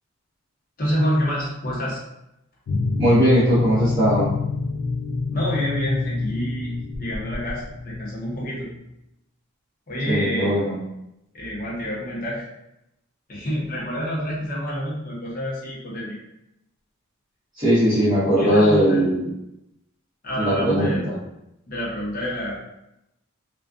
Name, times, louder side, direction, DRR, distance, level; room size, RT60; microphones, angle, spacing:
voice 1, 0.8-2.0 5.3-8.7 9.9-10.6 11.3-12.5 13.3-16.2 18.3-19.0 20.2-21.1 21.7-22.6, equal, 45° left, -5 dB, 0.8 m, -27 dB
sound 1, 2.7-8.6, left 3 dB, 75° left, 0.3 m, -26 dB
voice 2, 3.0-4.3 10.1-10.8 17.6-19.2 20.4-21.1, equal, 25° right, -13 dB, 0.9 m, -19 dB
2.4 x 2.2 x 2.4 m, 0.86 s
head